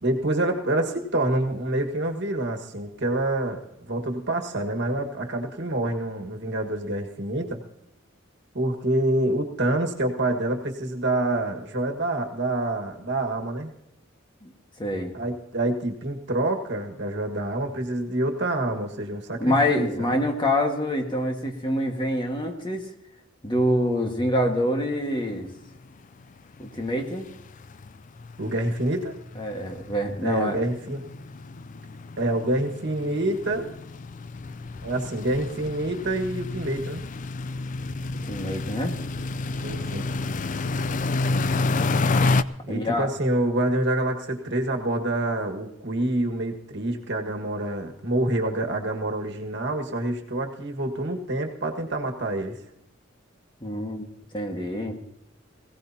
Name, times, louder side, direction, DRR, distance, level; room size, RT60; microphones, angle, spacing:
voice 1, 0.0-7.6 8.5-13.7 15.1-20.1 28.4-29.2 30.2-31.0 32.2-33.7 34.8-37.0 39.6-40.1 42.6-52.6, right 1 dB, 60° right, 3 dB, 1.7 m, -27 dB
voice 2, 14.8-15.1 19.4-22.9 23.4-25.5 26.6-27.3 29.3-30.6 38.3-38.9 42.7-43.1 53.6-54.1 54.3-55.0, left 1 dB, 25° left, 3 dB, 1.6 m, -26 dB
sound 1, 25.3-25.4 25.7-25.9 26.2-26.3 26.6-42.4, left 3 dB, 40° left, 0.4 m, -29 dB
21.5 x 16.5 x 2.8 m, 0.81 s
head